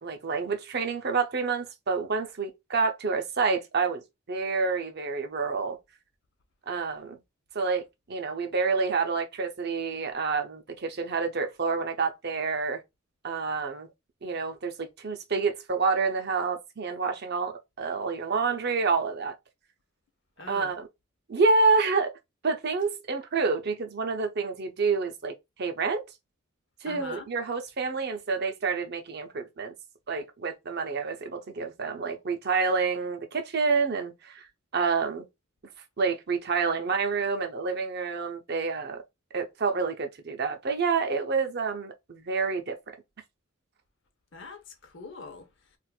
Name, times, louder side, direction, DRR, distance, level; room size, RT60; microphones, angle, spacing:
voice 1, 0.0-4.0 4.3-5.8 6.7-7.2 7.5-12.8 13.2-13.9 14.2-19.3 20.5-20.9 21.3-22.1 22.4-26.0 26.8-29.7 30.1-34.4 34.7-35.3 36.0-39.0 39.3-42.8, right 4 dB, 50° right, 0.6 m, -28 dB
voice 2, 20.4-20.7 26.8-27.3 44.3-45.8, left 3 dB, 60° left, 0.8 m, -43 dB
4.3 x 2.4 x 2.3 m
head